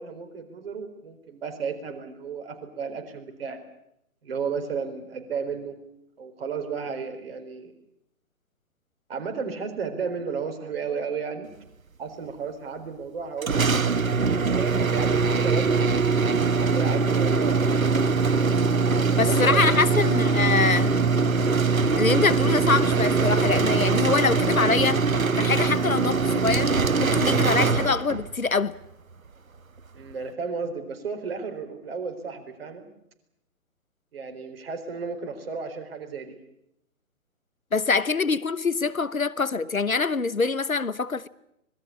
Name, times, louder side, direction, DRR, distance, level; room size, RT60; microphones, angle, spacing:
voice 1, 0.0-3.6 4.2-5.7 6.2-7.7 9.1-11.5 12.0-13.9 14.2-15.8 16.6-17.8 19.1-20.1 29.9-32.9 34.1-36.4, right 5 dB, 45° right, 4.3 m, -33 dB
sound 1, 13.4-28.4, right 4 dB, 80° right, 1.0 m, -22 dB
voice 2, 19.2-20.9 22.0-25.0 25.4-26.7 27.0-28.8 37.7-41.3, left 4 dB, 90° left, 1.0 m, -24 dB
25.5 x 20.5 x 8.6 m
figure-of-eight pair, 135°, 41 cm